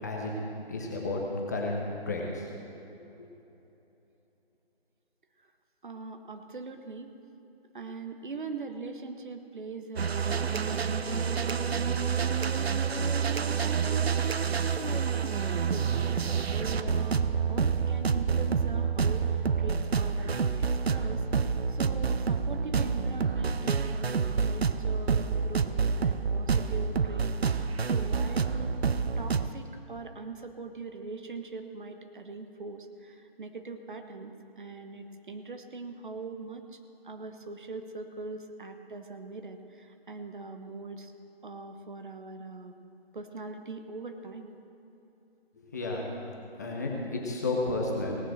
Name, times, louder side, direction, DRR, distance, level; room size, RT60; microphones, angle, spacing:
voice 1, 0.0-0.3 0.7-1.2 1.5-2.5 45.7-46.1 46.6-48.2, left 2 dB, 15° left, -1 dB, 0.9 m, -32 dB
voice 2, 5.8-7.1 7.7-17.2 17.5-28.8 29.2-41.1 41.4-42.7 43.1-44.5, right 3 dB, 55° right, 6 dB, 1.1 m, -42 dB
sound 1, 10.0-29.5, right 6 dB, 80° right, 0.7 m, -28 dB
18.0 x 7.3 x 6.5 m, 3.0 s
figure-of-eight pair, 160°, 31 cm